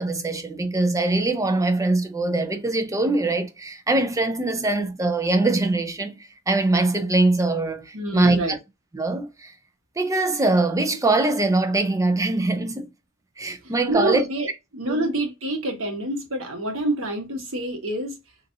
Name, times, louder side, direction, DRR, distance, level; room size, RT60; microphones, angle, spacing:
voice 1, 0.0-6.2 6.5-8.6 8.9-9.5 10.0-12.9 13.4-14.2 14.9-15.1, right 2 dB, 15° right, 0.5 m, -22 dB
voice 2, 7.9-8.6 13.6-18.2, right 1 dB, 75° right, 1.2 m, -27 dB
4.0 x 2.4 x 2.6 m
head